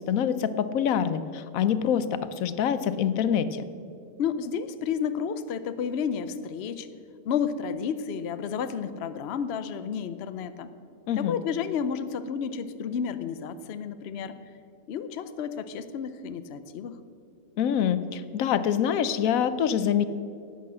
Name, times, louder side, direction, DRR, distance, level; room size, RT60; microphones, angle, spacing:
voice 1, 0.1-3.6 11.1-11.4 17.6-20.1, left 8 dB, 90° left, 13 dB, 1.1 m, -25 dB
voice 2, 4.2-6.9 7.2-10.7 11.2-14.4 14.9-16.9, left 7 dB, 60° left, 12 dB, 0.8 m, -31 dB
11.0 x 8.6 x 7.5 m, 2.5 s
omnidirectional pair, 1.4 m